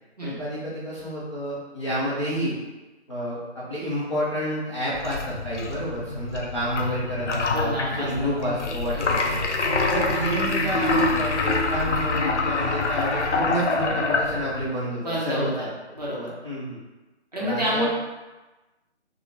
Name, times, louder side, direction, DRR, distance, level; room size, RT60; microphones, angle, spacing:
voice 1, 0.2-2.5 3.1-9.4 9.9-15.7 16.4-16.8 17.4-17.9, equal, 25° left, -10 dB, 0.5 m, -29 dB
sound 1, 4.9-14.7, left 3 dB, 90° left, 0.5 m, -25 dB
voice 2, 7.5-8.3 8.9-9.1 15.0-15.7 15.9-16.3 17.3-17.9, equal, 35° right, -6 dB, 0.6 m, -28 dB
2.9 x 2.0 x 2.8 m, 1.1 s
figure-of-eight pair, 160°, 34 cm